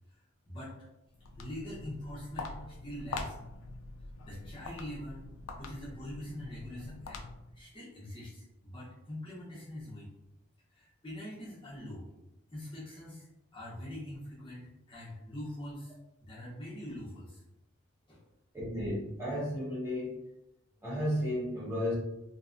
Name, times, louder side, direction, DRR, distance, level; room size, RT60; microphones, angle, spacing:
Walk footsteps, 1.1-7.6, left 3 dB, 85° left, 0.3 m, -44 dB
voice 1, 1.4-3.5 4.3-5.3 5.6-7.2 7.5-10.1 10.7-12.1 12.5-13.3 13.5-15.9 16.2-17.4 18.1-18.2, left 1 dB, 25° left, -8 dB, 0.6 m, -43 dB
voice 2, 18.5-20.3 20.8-21.9, equal, 10° right, -8 dB, 0.8 m, -33 dB
2.6 x 2.2 x 2.4 m, 0.92 s
head